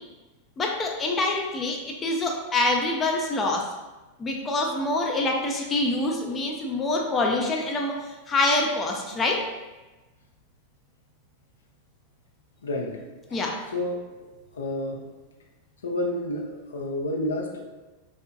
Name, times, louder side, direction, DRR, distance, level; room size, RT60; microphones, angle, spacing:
voice 1, 0.6-3.6 4.2-9.4 13.3-13.5, left 2 dB, 20° left, 0 dB, 0.4 m, -26 dB
voice 2, 12.6-13.0 13.3-13.4 13.7-14.0 14.5-15.0 15.8-17.6, left 1 dB, 70° left, -1 dB, 0.6 m, -30 dB
4.4 x 2.3 x 2.5 m, 1.1 s
figure-of-eight pair, 90°, 0 cm